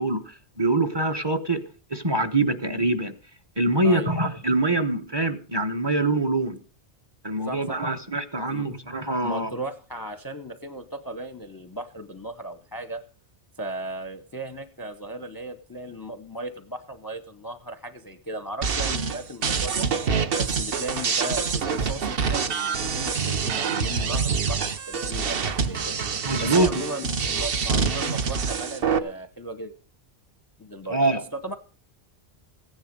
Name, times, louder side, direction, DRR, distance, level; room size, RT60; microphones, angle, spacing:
voice 1, 0.0-1.6 1.9-3.1 3.6-6.6 7.2-9.5 26.2-26.7 30.9-31.2, right 2 dB, 25° right, 10 dB, 1.0 m, -24 dB
voice 2, 7.4-7.8 8.5-8.7 9.2-13.0 13.6-29.7 30.6-31.0 31.3-31.6, right 1 dB, 20° left, 11 dB, 0.7 m, -36 dB
sound 1, 18.6-29.0, right 5 dB, 55° right, 1.1 m, -26 dB
15.5 x 10.0 x 5.2 m, 0.38 s
omnidirectional pair, 1.2 m